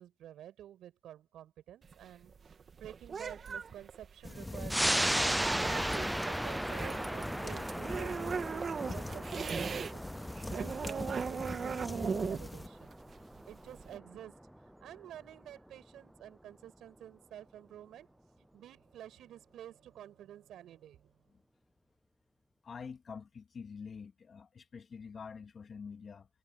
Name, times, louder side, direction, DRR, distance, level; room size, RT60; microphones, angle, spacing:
voice 1, 0.0-2.3 2.8-10.0 10.5-13.0 13.5-14.4 14.8-18.1 18.5-21.2, right 11 dB, 85° right, 7.1 m, -50 dB
sound 1, 1.8-9.9 10.2-14.0, right 6 dB, 60° right, 2.7 m, -39 dB
sound 2, 4.2-12.7, left 2 dB, 20° left, 3.0 m, -43 dB
sound 3, 4.7-15.7 16.1-16.2, right 1 dB, 5° right, 0.6 m, -36 dB
voice 2, 22.6-26.3, left 6 dB, 60° left, 2.9 m, -46 dB
supercardioid pair, 50°, 0 cm